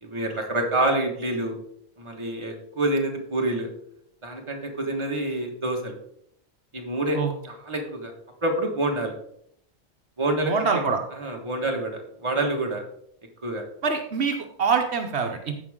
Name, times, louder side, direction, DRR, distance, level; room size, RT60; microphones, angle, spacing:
voice 1, 0.0-1.5 2.0-3.7 4.2-6.0 6.7-7.2 7.5-8.1 8.4-9.2 10.2-10.5 11.2-12.8 13.4-13.6, right 2 dB, 25° right, 1 dB, 1.6 m, -27 dB
voice 2, 10.4-11.0 13.8-15.7, right 5 dB, 70° right, 5 dB, 1.1 m, -25 dB
15.0 x 5.1 x 3.6 m, 0.69 s
omnidirectional pair, 1.1 m